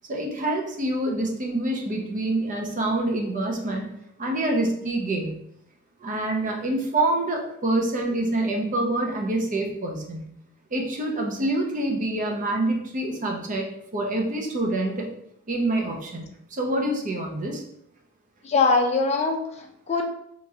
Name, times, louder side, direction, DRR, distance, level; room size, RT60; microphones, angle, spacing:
voice 1, 0.1-3.9 4.2-5.3 6.0-10.2 10.7-13.7 13.9-15.1 15.5-17.6, right 2 dB, 35° right, 1 dB, 0.6 m, -26 dB
voice 2, 18.4-20.0, left 4 dB, 30° left, 2 dB, 0.4 m, -22 dB
3.6 x 3.0 x 2.7 m, 0.73 s
head